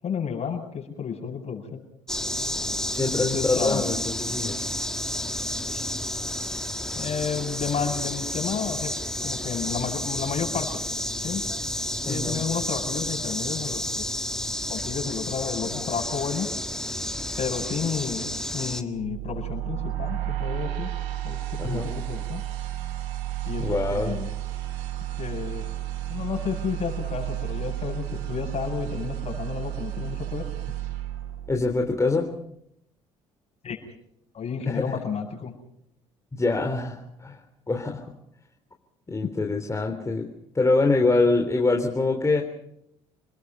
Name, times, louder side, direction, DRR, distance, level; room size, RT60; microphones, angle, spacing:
voice 1, 0.0-1.8 3.2-3.8 5.7-5.8 6.9-8.9 9.2-10.7 11.2-11.4 12.1-14.0 14.7-16.5 17.4-18.3 18.5-20.9 21.2-22.4 23.5-24.3 25.2-25.6 26.1-30.5 33.6-33.8 34.3-35.5 39.2-39.3, left 6 dB, 45° left, 3 dB, 7.9 m, -31 dB
sound 1, 2.1-18.8, left 1 dB, 5° left, 1.8 m, -31 dB
voice 2, 2.9-4.6 12.0-12.4 21.6-21.9 23.6-24.2 31.5-32.3 34.7-35.0 36.3-37.4 37.7-38.1 39.1-40.3 40.5-42.4, left 3 dB, 20° left, 2 dB, 3.6 m, -24 dB
sound 2, 18.9-32.0, right 14 dB, 75° right, 2.9 m, -32 dB
29.5 x 20.5 x 5.6 m, 0.74 s
hypercardioid pair, 60°, 15 cm